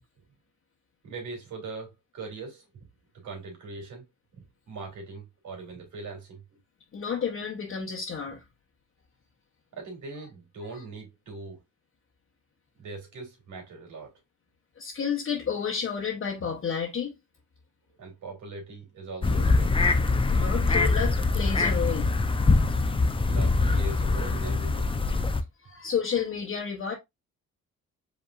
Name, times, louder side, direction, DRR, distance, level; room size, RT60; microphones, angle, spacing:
voice 1, 1.0-2.7 3.1-4.0 4.3-6.6 9.7-11.6 12.8-14.1 18.0-19.7 23.3-24.9, right 3 dB, 75° right, 2.7 m, -41 dB
voice 2, 6.9-8.4 14.8-17.1 20.3-22.1 25.6-26.9, left 7 dB, 45° left, 1.1 m, -31 dB
sound 1, 19.2-25.4, left 3 dB, 20° left, 0.6 m, -23 dB
5.1 x 3.5 x 2.5 m
cardioid pair, 90°, 30 cm